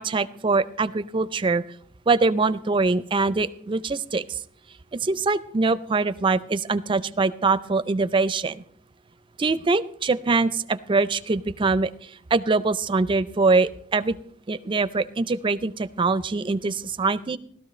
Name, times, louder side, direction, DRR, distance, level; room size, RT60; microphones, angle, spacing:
voice 1, 0.0-1.6 2.1-4.4 4.9-8.6 9.4-11.9 12.3-14.2 14.5-17.4, right 3 dB, 25° right, 14 dB, 0.4 m, -23 dB
17.0 x 13.0 x 3.2 m, 0.62 s
head